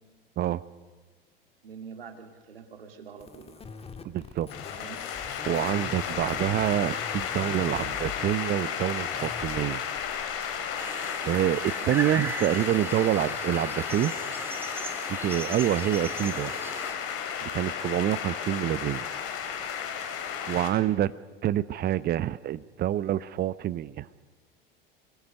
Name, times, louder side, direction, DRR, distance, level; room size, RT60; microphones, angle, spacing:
voice 1, 1.6-3.6 4.8-5.1 11.8-12.0 12.5-12.6 16.1-16.4, right 6 dB, 80° right, 6 dB, 2.6 m, -45 dB
sound 1, 3.2-8.4 9.0-9.7, left 5 dB, 20° left, 2.0 m, -43 dB
voice 2, 4.0-4.5 5.4-9.8 11.2-14.1 15.1-16.5 17.4-19.1 20.5-21.1 21.4-24.1, right 12 dB, 35° right, 18 dB, 0.8 m, -27 dB
sound 2, 4.5-20.7, left 8 dB, 50° left, 3.7 m, -33 dB
sound 3, 10.8-16.9, right 1 dB, 10° right, 3.1 m, -38 dB
25.5 x 21.5 x 6.6 m, 1.3 s
figure-of-eight pair, 80°, 29 cm